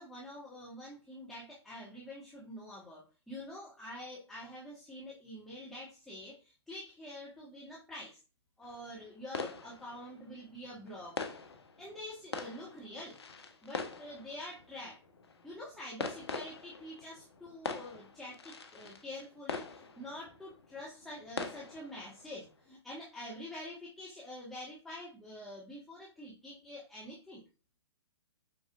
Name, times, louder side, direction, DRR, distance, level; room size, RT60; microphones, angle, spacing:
voice 1, 0.0-8.2 8.6-11.2 11.8-13.2 13.6-15.0 15.4-27.4, left 1 dB, ahead, -7 dB, 1.8 m, -46 dB
sound 1, 8.6-22.7, left 4 dB, 65° left, 1.2 m, -44 dB
8.3 x 4.8 x 2.7 m, 0.32 s
figure-of-eight pair, 120°, 15 cm